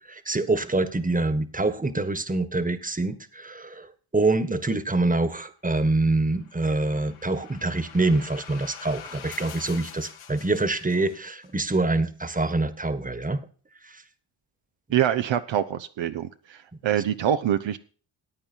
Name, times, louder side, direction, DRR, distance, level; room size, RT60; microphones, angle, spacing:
voice 1, 0.1-13.4 13.8-14.0, right 2 dB, 15° right, 13 dB, 1.5 m, -25 dB
sound 1, 6.2-11.5, left 9 dB, 90° left, 1.2 m, -45 dB
voice 2, 14.9-17.8, right 10 dB, 65° right, 9 dB, 0.8 m, -25 dB
14.5 x 8.9 x 4.5 m, 0.40 s
supercardioid pair, 50°, 48 cm